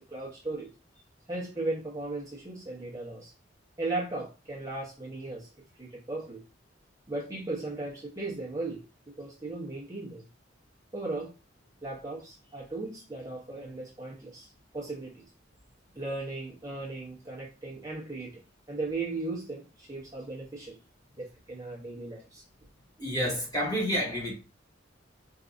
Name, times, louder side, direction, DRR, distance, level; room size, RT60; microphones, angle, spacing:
voice 1, 0.1-0.7 1.3-3.3 3.8-5.5 5.8-6.4 7.1-10.2 10.9-11.3 11.8-15.2 15.9-18.4 18.7-20.8 21.2-22.4, right 2 dB, 20° right, 0.8 m, -37 dB
voice 2, 23.0-24.3, equal, 20° left, 1.1 m, -29 dB
4.5 x 2.6 x 2.5 m
head